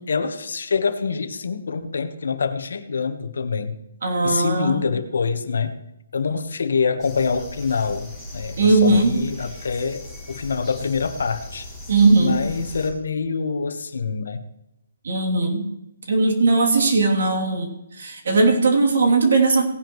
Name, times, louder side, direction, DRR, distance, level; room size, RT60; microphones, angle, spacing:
voice 1, 0.1-3.7 4.2-5.8 6.1-11.7 12.2-14.4, left 5 dB, 70° left, 10 dB, 1.3 m, -25 dB
voice 2, 4.0-4.8 8.6-9.2 11.9-12.4 15.0-15.7 16.1-19.6, right 3 dB, 60° right, 1 dB, 3.0 m, -18 dB
sound 1, 7.0-12.9, left 1 dB, 5° right, 2.7 m, -38 dB
18.0 x 10.5 x 3.2 m, 0.87 s
hypercardioid pair, 175°, 0 cm